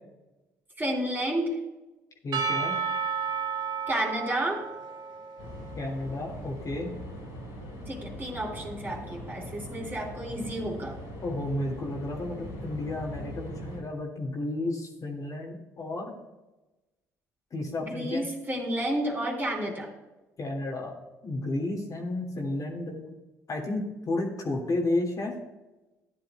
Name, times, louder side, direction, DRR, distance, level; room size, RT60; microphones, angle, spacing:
voice 1, 0.8-1.6 3.9-4.6 7.9-11.0 17.9-19.9, right 1 dB, 25° right, -1 dB, 3.2 m, -31 dB
voice 2, 2.2-2.8 5.8-6.9 11.2-16.2 17.5-18.3 20.4-21.0 21.2-23.2 23.5-25.3, left 2 dB, 40° left, -1 dB, 2.0 m, -32 dB
Percussion / Church bell, 2.3-6.7, right 6 dB, 60° right, 1.1 m, -33 dB
sound 1, 5.4-13.8, equal, 75° left, 3.1 m, -41 dB
13.5 x 10.0 x 2.2 m, 1.1 s
hypercardioid pair, 50°, 9 cm